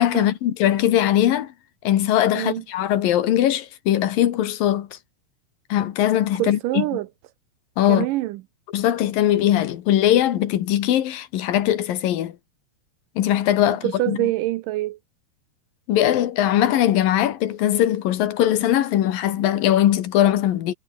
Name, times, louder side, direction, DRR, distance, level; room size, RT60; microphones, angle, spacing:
voice 1, 0.0-1.5 1.8-4.9 5.7-6.8 7.8-8.1 8.7-12.3 13.2-14.2 15.9-20.7, left 12 dB, 70° left, 3.1 m, -20 dB
voice 2, 6.4-7.1 7.9-8.4 13.8-15.0, right 17 dB, 75° right, 2.1 m, -25 dB
omnidirectional pair, 4.2 m